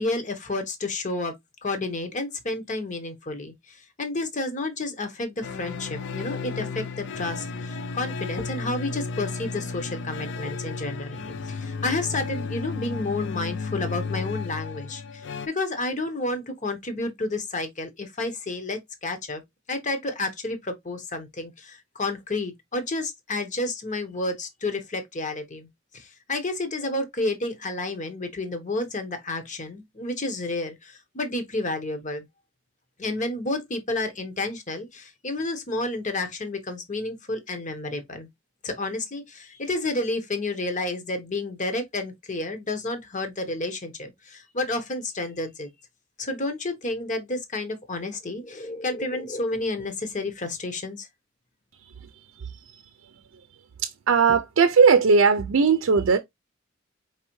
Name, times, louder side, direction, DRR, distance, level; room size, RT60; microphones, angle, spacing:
voice 1, 0.0-1.3 1.6-11.2 11.4-19.4 19.7-25.7 25.9-32.3 33.0-38.3 38.6-45.7 46.2-51.1, left 2 dB, 40° left, 1.0 m, -30 dB
sound 1, 5.4-15.5, left 4 dB, 60° left, 0.5 m, -33 dB
voice 2, 54.1-56.2, right 5 dB, 80° right, 0.5 m, -18 dB
4.8 x 3.3 x 3.1 m
head